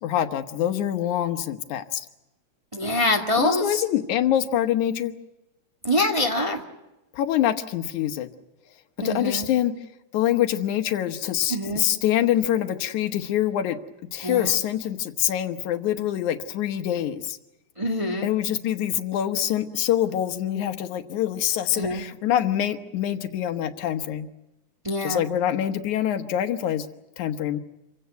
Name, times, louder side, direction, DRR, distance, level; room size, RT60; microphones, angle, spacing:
voice 1, 0.0-2.1 3.4-5.1 7.1-8.3 9.0-9.8 10.1-13.8 14.1-17.4 18.2-24.3 25.0-26.9 27.2-27.6, left 11 dB, 85° left, 8 dB, 2.6 m, -25 dB
voice 2, 2.7-3.8 5.8-6.6 9.0-9.5 11.5-11.8 14.2-14.6 17.8-18.3 21.8-22.0 24.8-25.2, left 1 dB, 15° right, 1 dB, 1.5 m, -25 dB
27.0 x 16.5 x 9.2 m, 0.99 s
omnidirectional pair, 3.3 m